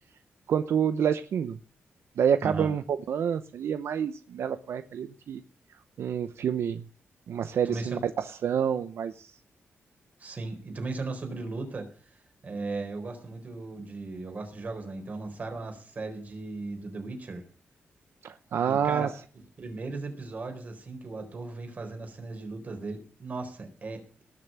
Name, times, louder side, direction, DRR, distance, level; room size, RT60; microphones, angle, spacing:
voice 1, 0.5-1.6 2.2-5.4 6.0-6.8 7.3-8.0 8.2-9.3 18.2-19.1, right 8 dB, 75° right, 11 dB, 0.8 m, -28 dB
voice 2, 7.6-8.0 10.2-11.9 12.4-17.4 18.6-19.1 19.6-24.2, right 3 dB, 35° right, 5 dB, 4.1 m, -37 dB
19.0 x 6.9 x 8.7 m, 0.43 s
wide cardioid pair, 150°, 4 cm